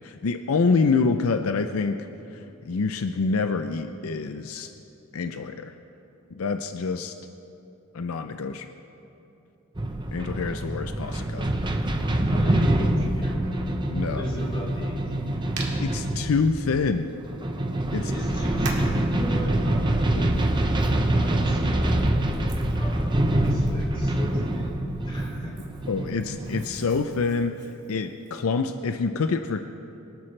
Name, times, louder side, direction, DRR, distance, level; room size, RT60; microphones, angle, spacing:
voice 1, 0.0-2.0 2.3-4.7 5.1-5.7 6.3-7.1 7.9-8.7 10.1-11.5 13.9-14.3 15.8-17.1 17.9-18.1 20.1-20.4 25.9-27.5 27.9-29.6, left 4 dB, 75° left, 7 dB, 0.5 m, -26 dB
sound 1, 9.7-27.3, right 1 dB, 20° right, 0.8 m, -25 dB
voice 2, 11.8-13.5 14.1-15.5 17.9-20.0 20.7-25.6, left 1 dB, 25° left, -2 dB, 2.9 m, -39 dB
Hands, 15.6-15.7 16.2-16.3 17.5-17.6 18.6-19.0 19.9-24.7 25.1-28.4, right 4 dB, 55° right, 2.1 m, -42 dB
23.5 x 13.0 x 3.3 m, 3.0 s
head